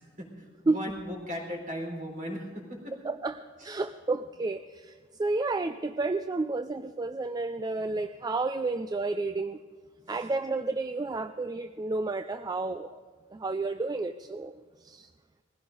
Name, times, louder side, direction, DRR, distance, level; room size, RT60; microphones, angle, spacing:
voice 1, 0.0-3.0 3.6-3.8 10.1-10.3, equal, 45° right, 0 dB, 3.9 m, -38 dB
voice 2, 3.0-3.4 3.6-9.6 10.1-13.0 13.3-15.1, right 3 dB, 20° right, 9 dB, 0.4 m, -31 dB
20.0 x 15.5 x 3.9 m, 1.5 s
head